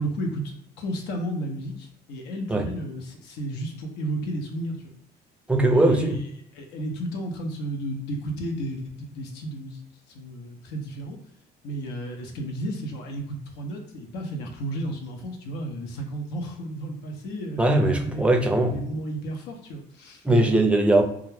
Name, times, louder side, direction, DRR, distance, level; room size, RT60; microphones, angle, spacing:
voice 1, 0.0-4.8 5.6-6.1 6.6-9.8 10.1-11.2 11.6-17.6 18.0-18.2 18.6-20.2, right 1 dB, 85° left, 0.6 m, -33 dB
voice 2, 5.5-6.2 17.6-18.8 20.2-21.0, right 1 dB, 5° right, 0.4 m, -20 dB
2.3 x 2.1 x 3.1 m
cardioid pair, 110°, 17 cm